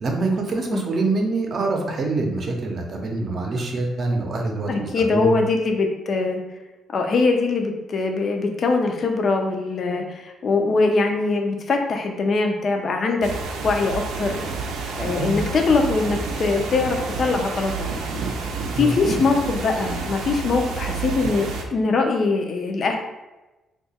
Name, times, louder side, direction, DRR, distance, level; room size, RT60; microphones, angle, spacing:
voice 1, 0.0-5.3 15.2-15.3 18.5-19.3, right 3 dB, 45° right, 2 dB, 0.6 m, -25 dB
voice 2, 4.7-6.4 6.9-13.3 13.6-14.4 15.0-18.0 18.8-23.0, left 3 dB, 45° left, 3 dB, 0.4 m, -22 dB
sound 1, 13.2-21.6, right 4 dB, 90° right, 0.5 m, -29 dB
2.7 x 2.3 x 4.0 m, 1.1 s
cardioid pair, 130°, 0 cm